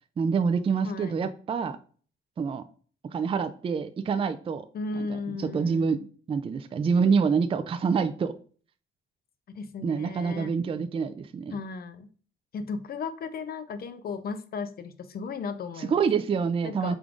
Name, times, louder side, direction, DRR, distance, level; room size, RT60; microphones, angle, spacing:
voice 1, 0.2-1.8 2.4-2.6 3.1-4.7 5.0-6.0 6.3-8.3 9.8-11.6 15.8-16.9, right 5 dB, 30° right, 9 dB, 0.4 m, -26 dB
voice 2, 0.8-1.2 4.7-6.1 9.5-10.5 11.5-12.1 12.5-16.0 16.6-16.9, left 4 dB, 50° left, 11 dB, 0.6 m, -35 dB
5.2 x 3.4 x 2.5 m, 0.42 s
cardioid pair, 90°, 20 cm